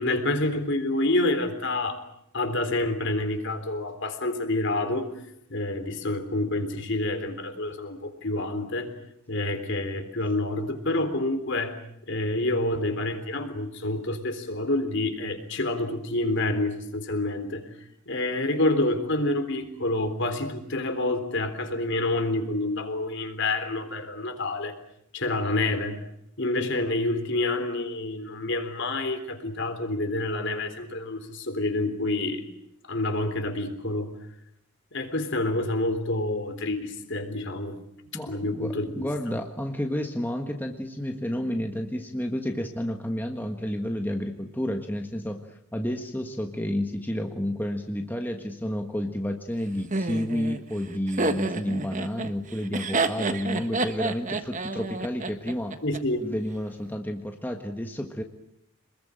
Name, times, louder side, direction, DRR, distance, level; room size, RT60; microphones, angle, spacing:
voice 1, 0.0-2.0 2.3-5.1 5.5-8.9 9.3-11.7 12.1-17.6 18.1-24.8 25.1-26.0 26.4-32.5 32.9-34.1 34.9-37.8 38.3-39.1 55.8-56.2, left 2 dB, 55° left, 7 dB, 3.7 m, -28 dB
voice 2, 38.1-55.8 56.2-58.2, equal, 10° left, 3 dB, 1.5 m, -31 dB
Laughter, 49.9-56.0, right 2 dB, 35° right, 1.4 m, -29 dB
27.5 x 21.0 x 9.0 m, 0.78 s
head